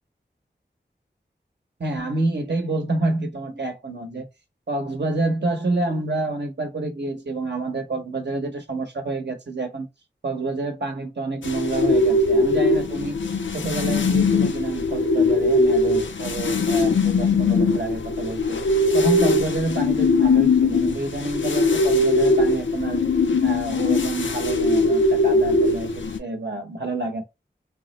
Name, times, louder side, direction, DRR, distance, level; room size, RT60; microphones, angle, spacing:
voice 1, 1.8-4.3 4.7-9.9 10.2-13.2 13.5-18.6 18.9-23.0 23.4-27.2, right 2 dB, 65° right, 0.8 m, -28 dB
sound 1, 11.4-26.2, left 3 dB, 85° left, 0.5 m, -20 dB
3.4 x 2.0 x 3.0 m
wide cardioid pair, 45°, 19 cm